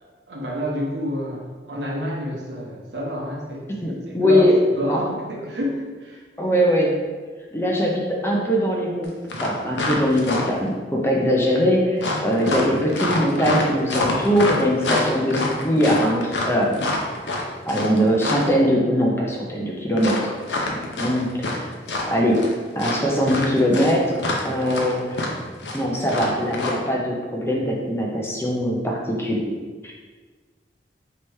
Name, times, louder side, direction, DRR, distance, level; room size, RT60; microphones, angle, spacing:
voice 1, 0.3-3.7 4.2-6.2 12.1-12.2, equal, 75° right, -2 dB, 0.9 m, -28 dB
voice 2, 3.8-4.5 4.9-5.0 6.4-7.0 7.5-9.1 9.4-16.8 17.7-20.4 20.7-21.3 21.5-21.7 22.1-22.4 22.8-25.3 25.7-29.6 29.8-29.9, equal, 15° left, -2 dB, 0.5 m, -21 dB
sound 1, 9.0-9.1 9.3-10.7 12.0-18.5 20.0-21.6 21.8-22.5 22.8-26.7, left 2 dB, 85° left, 0.7 m, -26 dB
3.3 x 2.9 x 4.6 m, 1.4 s
head